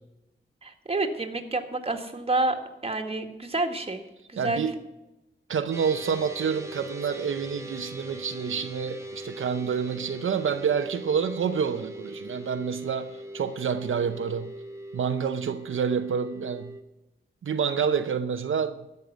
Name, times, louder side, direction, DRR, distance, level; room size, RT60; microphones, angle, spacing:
voice 1, 0.6-4.0 4.3-4.7, right 2 dB, 30° right, 1.7 m, -29 dB
voice 2, 4.4-4.8 5.5-14.5 14.9-16.7 17.4-18.8, right 6 dB, 85° right, 0.7 m, -28 dB
sound 1, 5.7-16.8, right 1 dB, 15° right, 1.3 m, -40 dB
11.5 x 6.7 x 8.2 m
wide cardioid pair, 90°, 20 cm